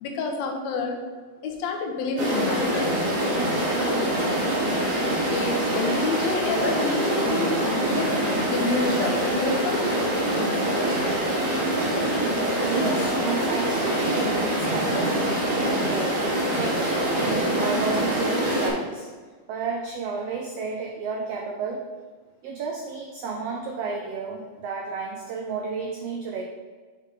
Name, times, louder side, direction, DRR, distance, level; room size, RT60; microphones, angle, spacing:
voice 1, 0.0-1.0 1.4-3.0 5.2-8.2 8.5-9.8, left 3 dB, 70° left, 1 dB, 2.0 m, -28 dB
sound 1, 2.2-18.7, right 1 dB, 65° right, 3.1 m, -24 dB
voice 2, 11.6-12.3 12.6-19.1 19.5-21.9 22.4-26.4, right 4 dB, 85° right, 2 dB, 1.4 m, -32 dB
6.5 x 4.4 x 4.9 m, 1.4 s
omnidirectional pair, 3.5 m